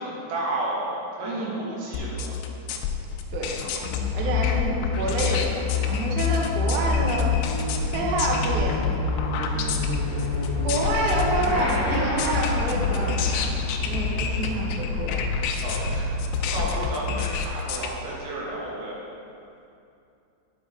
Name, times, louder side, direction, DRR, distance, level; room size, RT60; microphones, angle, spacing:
voice 1, 0.0-2.4 4.2-4.4 14.2-14.4 15.6-16.1 16.5-19.0, right 1 dB, 60° right, -5 dB, 3.4 m, -32 dB
voice 2, 1.2-1.6 3.3-3.5 4.1-7.4 7.9-8.9 9.5-9.9 10.6-13.5 13.8-15.1, right 2 dB, 90° right, -2 dB, 1.8 m, -28 dB
sound 1, 1.9-17.9, left 5 dB, 85° left, 2.9 m, -29 dB
Motorcycle / Accelerating revving vroom, 3.6-17.5, left 4 dB, 55° left, 2.8 m, -28 dB
9.5 x 7.1 x 4.9 m, 2.6 s
omnidirectional pair, 5.3 m